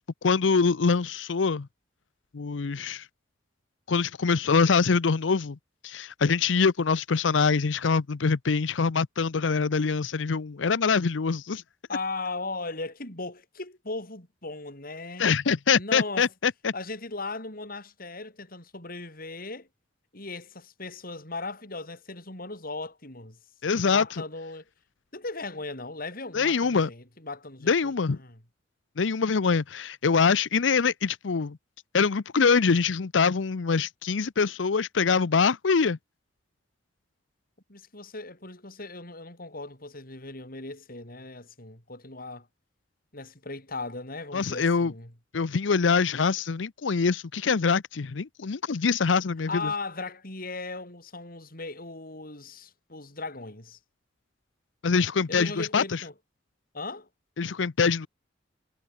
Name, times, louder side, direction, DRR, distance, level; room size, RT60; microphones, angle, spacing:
voice 1, 0.2-1.7 2.3-3.0 3.9-5.6 5.8-11.6 15.2-16.7 23.6-24.0 26.3-26.9 27.7-28.2 29.0-31.6 31.9-36.0 44.3-44.9 45.3-49.7 54.8-55.8 57.4-58.1, left 5 dB, 90° left, 0.6 m, -24 dB
voice 2, 11.9-15.3 15.7-16.3 16.7-19.7 20.1-23.4 23.9-24.6 25.1-28.4 37.7-42.5 43.1-45.1 49.5-53.8 55.3-56.1 56.7-57.1, left 3 dB, 50° left, 7.1 m, -37 dB
head